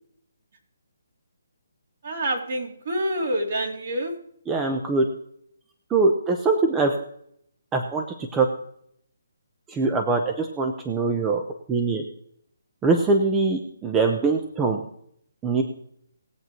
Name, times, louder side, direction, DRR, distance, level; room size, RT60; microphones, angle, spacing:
voice 1, 2.0-4.1, right 1 dB, 50° right, 1 dB, 3.1 m, -27 dB
voice 2, 4.5-5.1 5.9-7.0 7.7-8.0 8.3-8.5 9.7-11.4 11.7-12.0 12.8-14.8 15.4-15.6, right 3 dB, 10° right, 4 dB, 0.8 m, -22 dB
20.0 x 7.9 x 3.0 m, 0.69 s
hypercardioid pair, 165°, 0 cm